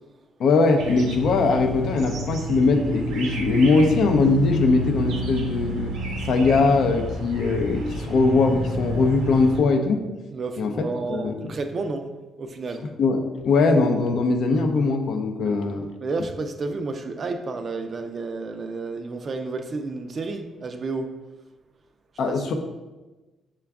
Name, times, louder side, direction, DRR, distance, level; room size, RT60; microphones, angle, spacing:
voice 1, 0.4-5.9 6.2-10.0 10.6-11.6 13.0-15.9 22.2-22.5, left 3 dB, 70° left, 0.5 m, -21 dB
sound 1, 0.8-9.6, right 1 dB, 85° right, 0.7 m, -30 dB
voice 2, 10.3-12.1 12.4-12.8 15.4-15.6 16.0-21.1 22.3-22.5, right 3 dB, 45° right, 0.3 m, -31 dB
5.9 x 2.3 x 3.4 m
cardioid pair, 90°, 0 cm